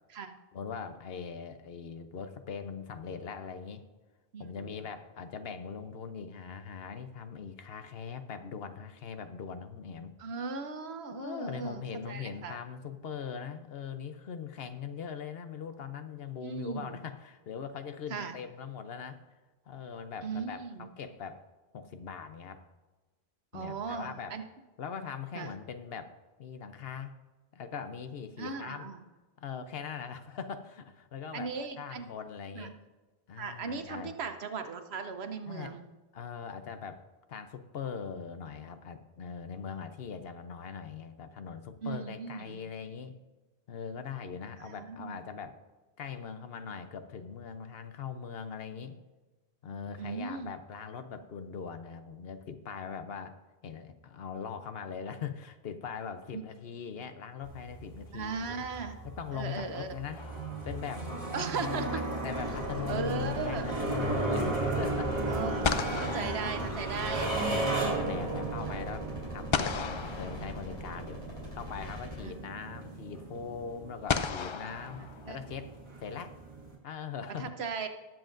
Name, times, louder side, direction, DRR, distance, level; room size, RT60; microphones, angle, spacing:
voice 1, 0.5-3.8 4.4-10.1 11.1-19.2 19.7-21.4 21.7-22.6 23.5-24.4 24.8-26.1 26.4-27.2 27.5-28.9 29.4-32.8 33.3-34.2 35.5-35.8 36.1-37.0 37.3-43.1 43.7-45.6 46.0-49.0 49.6-58.7 59.0-60.2 60.6-61.1 61.4-66.5 67.0-71.2 71.5-75.7 76.0-76.3 76.8-77.5, left 6 dB, 70° left, 9 dB, 0.9 m, -41 dB
voice 2, 4.3-4.8 10.2-12.6 16.4-17.0 18.1-18.3 20.2-20.9 23.5-24.4 25.3-25.5 28.4-29.0 31.3-32.1 32.5-32.7 33.4-35.9 41.8-42.6 44.6-45.2 50.0-50.5 56.3-56.4 56.9-57.0 58.1-58.9 59.3-59.9 61.3-62.0 62.9-63.7 65.3-67.3 72.2-72.5 75.3-75.4 77.4-77.9, right 5 dB, 85° right, 7 dB, 1.1 m, -37 dB
sound 1, 57.4-76.7, right 2 dB, 30° right, 2.2 m, -35 dB
sound 2, 60.1-61.0 65.1-65.2 65.6-67.4 69.5-71.1 72.4-72.5 74.1-75.7, left 6 dB, 50° left, 0.3 m, -35 dB
sound 3, 62.3-72.2, left 2 dB, 30° left, 3.7 m, -44 dB
19.0 x 7.6 x 2.6 m, 1.2 s
omnidirectional pair, 1.0 m